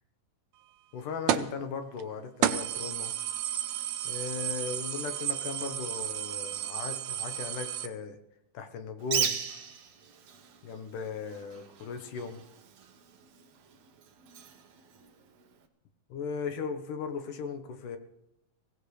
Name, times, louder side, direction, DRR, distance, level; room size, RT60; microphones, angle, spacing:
voice 1, 0.9-3.1 4.0-8.2 8.5-9.4 10.6-12.4 16.1-18.0, left 5 dB, 70° left, 7 dB, 2.6 m, -37 dB
sound 1, 1.3-1.6 2.0-2.1 2.4-7.9, right 10 dB, 75° right, 1.6 m, -32 dB
Bird, 9.0-15.7, right 7 dB, 60° right, 2.1 m, -38 dB
23.0 x 17.5 x 3.3 m, 0.82 s
omnidirectional pair, 4.0 m